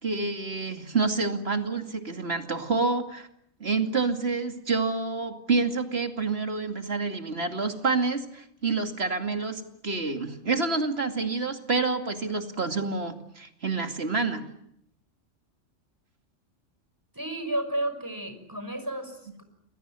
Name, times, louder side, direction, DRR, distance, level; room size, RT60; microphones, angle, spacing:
voice 1, 0.0-3.3 3.6-14.5, right 4 dB, 55° right, 5 dB, 2.7 m, -28 dB
voice 2, 17.1-19.4, right 1 dB, 15° right, 8 dB, 5.9 m, -32 dB
29.0 x 22.0 x 9.0 m, 0.76 s
omnidirectional pair, 1.3 m